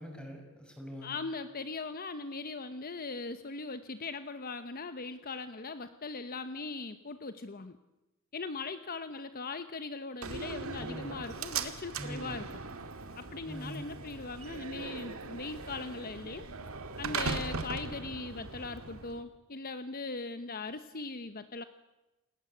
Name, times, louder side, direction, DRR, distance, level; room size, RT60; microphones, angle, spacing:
voice 1, 0.0-1.2 10.8-11.2 12.0-12.4 13.4-13.9, equal, 5° left, 2 dB, 6.2 m, -43 dB
voice 2, 1.0-7.8 8.3-12.5 13.2-16.5 17.0-21.6, left 3 dB, 45° left, 10 dB, 1.0 m, -40 dB
Slam, 10.2-19.2, right 4 dB, 75° right, 2.1 m, -39 dB
28.5 x 19.0 x 8.4 m, 1.0 s
head